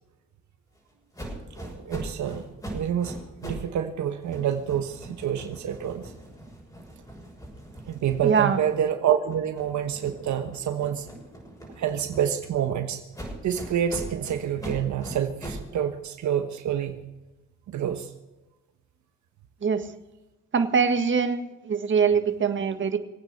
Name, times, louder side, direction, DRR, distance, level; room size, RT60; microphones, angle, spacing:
sound 1, 1.1-3.7 4.0-8.8 9.2-12.6 13.1-15.7, right 1 dB, 10° left, 6.3 m, -41 dB
voice 1, 1.7-2.4 2.7-3.1 3.4-6.1 7.9-11.1 11.8-13.0 13.4-17.0 17.7-18.1, right 9 dB, 70° right, 7 dB, 1.3 m, -27 dB
voice 2, 8.2-8.6 19.6-19.8 20.5-21.4 21.7-23.0, right 6 dB, 40° right, 8 dB, 1.7 m, -22 dB
22.5 x 9.1 x 6.6 m, 1.0 s
cardioid pair, 90°, 30 cm